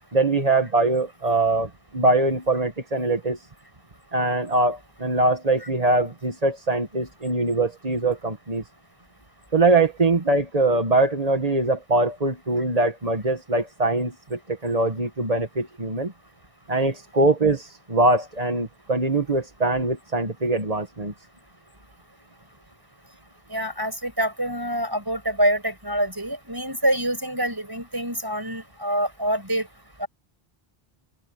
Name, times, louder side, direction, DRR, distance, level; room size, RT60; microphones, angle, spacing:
voice 1, 0.1-3.5 4.1-8.6 9.5-16.1 16.7-21.1, right 2 dB, 40° right, 1.9 m, -22 dB
voice 2, 23.5-29.7 30.0-30.1, right 1 dB, 20° right, 6.2 m, -26 dB
open air
omnidirectional pair, 1.0 m